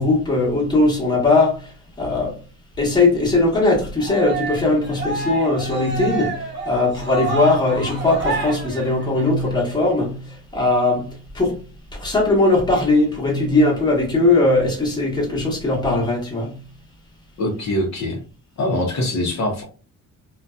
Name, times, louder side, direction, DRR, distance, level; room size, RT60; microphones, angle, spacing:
voice 1, 0.0-2.4 2.8-11.6 11.9-16.6, left 2 dB, 15° left, 1.1 m, -19 dB
Cheering, 4.0-9.5, right 3 dB, 35° right, 1.1 m, -28 dB
voice 2, 17.4-18.2 18.6-19.6, left 1 dB, 55° left, 0.8 m, -23 dB
2.6 x 2.2 x 2.2 m
cardioid pair, 130°, 32 cm